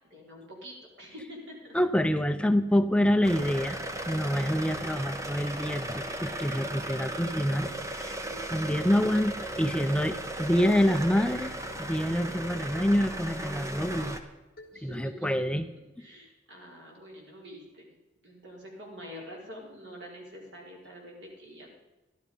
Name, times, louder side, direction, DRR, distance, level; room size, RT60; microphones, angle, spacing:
voice 1, 0.1-1.7 14.7-15.3 16.0-17.9 18.2-21.7, equal, 80° right, -1 dB, 4.3 m, -46 dB
voice 2, 1.7-3.8 4.1-7.7 7.9-8.2 8.5-11.5 11.8-14.2 14.8-15.7, equal, 5° left, 10 dB, 0.4 m, -26 dB
sound 1, 3.1-3.2 3.7-3.9 4.3-4.4 4.7-5.1 5.5-6.2 7.2-7.9 8.2-8.5 9.1-9.3 10.4-11.0 11.3-12.0 12.3-12.4 12.7-13.0 13.4-13.5 14.0-14.3 14.6-15.0, left 1 dB, 55° left, 1.8 m, -51 dB
sound 2, 3.2-14.2, right 1 dB, 15° right, 1.0 m, -36 dB
12.5 x 12.0 x 5.4 m, 1.1 s
head